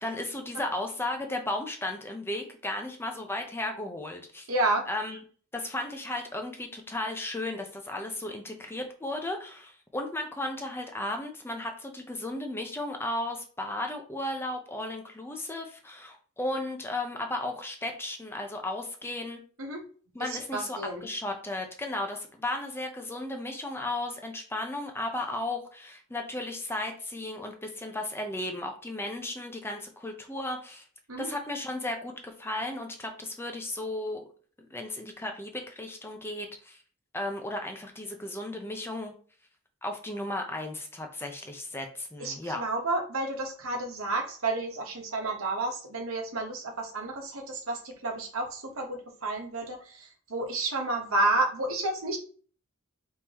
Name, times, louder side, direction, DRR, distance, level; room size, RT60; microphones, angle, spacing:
voice 1, 0.0-4.5 4.9-5.2 5.5-19.4 20.1-30.8 31.2-34.2 34.6-36.8 37.1-39.1 39.8-42.6, left 1 dB, 10° left, 3 dB, 0.7 m, -35 dB
voice 2, 4.5-4.8 19.6-19.8 20.2-21.0 31.1-31.3 42.2-52.2, right 2 dB, 70° right, 2 dB, 1.2 m, -31 dB
4.7 x 3.7 x 2.9 m, 0.43 s
head